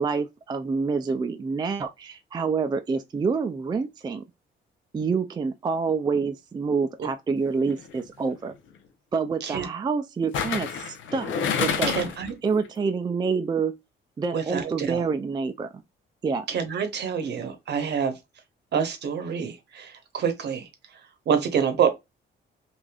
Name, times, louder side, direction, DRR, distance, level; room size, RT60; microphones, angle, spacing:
voice 1, 0.0-4.2 4.9-8.5 9.1-11.3 11.6-12.0 12.4-13.7 14.2-15.8 16.2-16.5, right 5 dB, 20° right, 0.3 m, -27 dB
sound 1, 7.7-8.0 10.3-12.3 12.6-12.7, left 7 dB, 75° left, 0.6 m, -28 dB
voice 2, 11.9-12.3 14.3-15.0 16.5-18.1 18.7-20.7 21.3-21.9, right 7 dB, 60° right, 0.8 m, -27 dB
3.3 x 2.5 x 2.3 m
cardioid pair, 90°, 20 cm